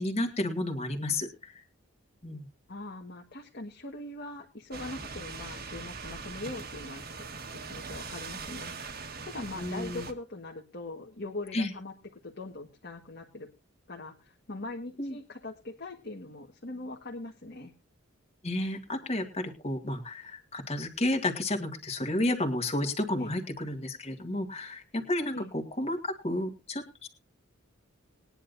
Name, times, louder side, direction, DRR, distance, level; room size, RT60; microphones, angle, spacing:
voice 1, 0.0-1.6 2.2-2.5 9.6-10.1 11.5-11.7 15.0-15.2 18.4-27.1, left 1 dB, 30° left, 3 dB, 1.9 m, -32 dB
voice 2, 2.7-7.3 7.7-8.7 9.2-11.9 12.2-13.5 13.9-17.7 23.1-23.3 25.3-25.5, left 2 dB, 50° left, 0 dB, 1.5 m, -41 dB
sound 1, 4.7-10.1, right 4 dB, 50° right, 1.5 m, -41 dB
21.0 x 10.0 x 2.6 m, 0.28 s
head